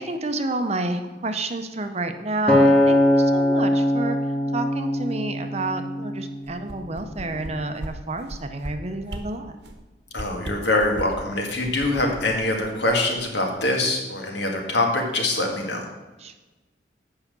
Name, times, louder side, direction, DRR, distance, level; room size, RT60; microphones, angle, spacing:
voice 1, 0.0-4.2 4.5-9.5 16.2-16.4, right 2 dB, 35° right, 7 dB, 0.7 m, -29 dB
Acoustic guitar, 2.5-6.8 7.4-7.7, left 1 dB, 5° left, 1.5 m, -21 dB
sound 1, 6.4-7.5 7.8-7.9 8.2-8.7 9.1-9.2 9.6-9.8 10.1-11.2 11.6-13.2 13.6-13.7, right 1 dB, 70° right, 1.0 m, -36 dB
voice 2, 10.1-15.8, left 2 dB, 70° left, 1 dB, 1.9 m, -24 dB
8.4 x 5.7 x 6.7 m, 1.2 s
head